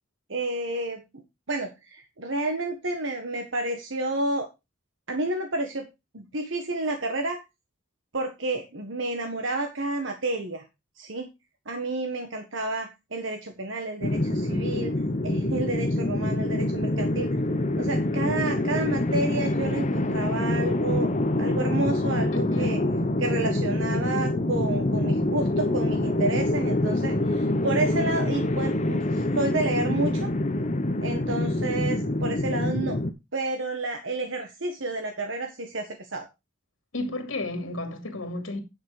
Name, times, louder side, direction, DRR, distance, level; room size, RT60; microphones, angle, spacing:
voice 1, 0.3-1.0 1.5-4.5 5.1-5.9 6.1-7.4 8.1-10.6 11.0-11.3 11.7-14.9 15.2-17.3 17.8-21.1 21.4-22.8 23.2-30.3 31.0-33.0 33.3-36.2, right 2 dB, 75° right, 1.6 m, -30 dB
sound 1, 14.0-33.1, left 1 dB, 40° left, 1.0 m, -26 dB
voice 2, 22.3-22.8 36.9-38.6, left 2 dB, 90° left, 2.5 m, -32 dB
10.5 x 5.8 x 4.9 m
head